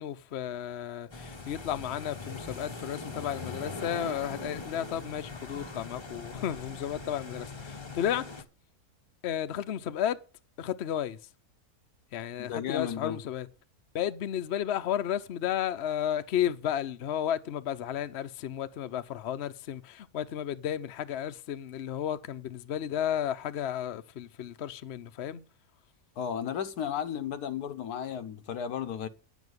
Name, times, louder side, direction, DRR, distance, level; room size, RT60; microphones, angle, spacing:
voice 1, 0.0-8.3 9.2-10.2 10.6-11.2 12.1-13.5 13.9-25.4, left 10 dB, 55° left, 0.9 m, -33 dB
sound 1, 1.1-8.4, left 3 dB, 20° left, 0.8 m, -41 dB
voice 2, 12.4-13.2 26.2-29.1, left 9 dB, 85° left, 1.4 m, -34 dB
10.0 x 7.2 x 8.0 m
omnidirectional pair, 1.6 m